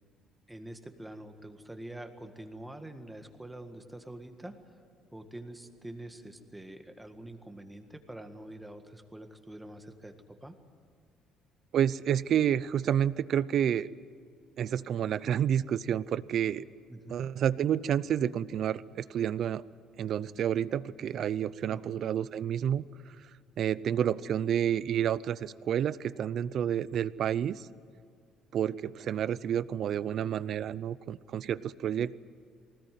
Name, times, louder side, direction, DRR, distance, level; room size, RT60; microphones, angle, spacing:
voice 1, 0.5-4.6 5.1-10.1 10.4-10.5 16.9-17.3 21.7-22.0, right 1 dB, 5° right, 6 dB, 1.7 m, -45 dB
voice 2, 11.7-13.9 14.6-16.6 17.1-19.6 20.0-22.8 23.6-27.7 28.5-32.2, right 9 dB, 55° right, 18 dB, 0.6 m, -29 dB
20.0 x 19.0 x 9.3 m, 2.2 s
cardioid pair, 125°, 0 cm